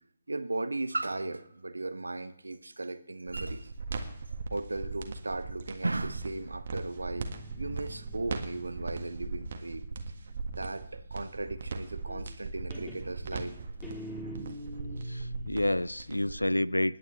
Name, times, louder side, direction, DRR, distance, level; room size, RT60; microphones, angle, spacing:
voice 1, 0.3-3.7 4.3-9.8 10.6-13.6, right 2 dB, 70° right, 1.0 m, -36 dB
sound 1, 3.3-16.4, right 4 dB, 45° right, 1.7 m, -39 dB
Guitar, 7.0-10.5 12.1-12.5 12.7-15.6, right 1 dB, 5° left, 3.2 m, -44 dB
voice 2, 15.0-17.0, left 1 dB, 80° left, 0.5 m, -29 dB
29.0 x 9.7 x 3.3 m
figure-of-eight pair, 140°, 0 cm